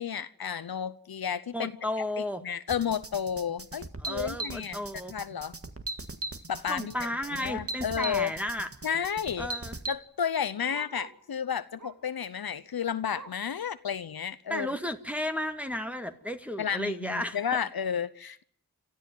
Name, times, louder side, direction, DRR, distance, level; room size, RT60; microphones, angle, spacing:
voice 1, 0.0-1.7 2.4-4.8 5.1-5.5 6.5-7.1 7.4-8.3 8.8-9.5 9.9-14.8 16.6-18.4, left 8 dB, 70° left, 14 dB, 0.9 m, -32 dB
voice 2, 1.5-2.4 4.0-5.1 6.7-8.7 9.4-9.7 14.5-17.4, left 1 dB, 5° right, 5 dB, 1.8 m, -33 dB
sound 1, 2.7-10.0, right 2 dB, 35° right, 1.8 m, -38 dB
Bark, 9.1-11.3 11.8-12.2 12.6-13.6 14.0-14.1 14.5-14.6 15.3-15.4, right 2 dB, 55° right, 2.8 m, -50 dB
29.5 x 13.5 x 9.4 m, 0.65 s
cardioid pair, 40°, 38 cm